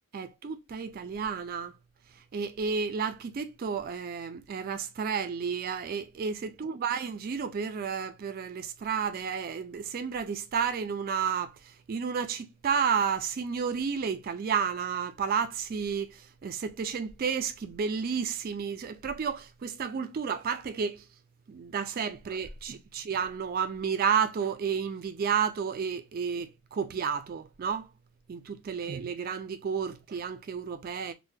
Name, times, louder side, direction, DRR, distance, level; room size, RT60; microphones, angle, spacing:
voice 1, 0.1-1.7 2.3-21.0 21.5-27.9 28.3-31.1, right 6 dB, 40° right, 0.3 m, -31 dB
3.5 x 2.1 x 2.6 m
head